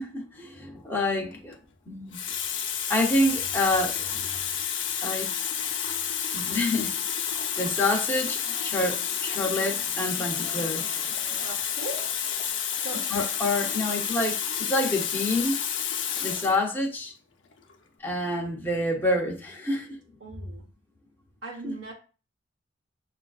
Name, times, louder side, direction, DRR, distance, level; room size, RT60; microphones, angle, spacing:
voice 1, 0.0-1.6 1.9-2.2 2.9-4.4 5.0-5.3 6.3-6.9 7.6-11.4 13.1-14.4 14.7-15.6 16.2-17.1 18.0-20.0 21.6-21.7, left 1 dB, 10° left, 0.8 m, -27 dB
Water tap faucet, 1.3-1.6 2.1-16.6 17.5-17.7, left 8 dB, 80° left, 0.6 m, -30 dB
voice 2, 11.3-12.2 12.8-13.3 20.2-20.7 21.4-21.9, right 2 dB, 75° right, 0.9 m, -40 dB
6.9 x 2.4 x 2.4 m
head